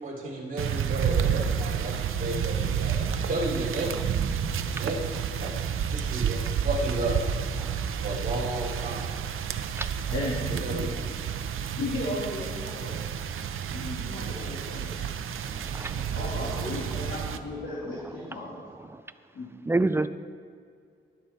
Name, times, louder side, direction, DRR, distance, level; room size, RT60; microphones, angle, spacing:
voice 1, 0.0-4.0 4.7-5.0 5.4-5.5 5.9-7.2 8.0-9.1 10.5-10.9, right 1 dB, 40° right, -6 dB, 3.3 m, -32 dB
sound 1, 0.6-17.4, right 8 dB, 90° right, 0.6 m, -30 dB
voice 2, 9.8-10.1 15.4-16.2 18.3-18.4 18.9-19.0 19.7-20.1, right 2 dB, 10° right, 12 dB, 0.3 m, -29 dB
voice 3, 11.8-13.0 13.7-15.1 15.9-18.6 19.3-19.5, left 2 dB, 80° left, -6 dB, 2.6 m, -35 dB
20.0 x 7.0 x 4.4 m, 2.3 s
wide cardioid pair, 175°, 20 cm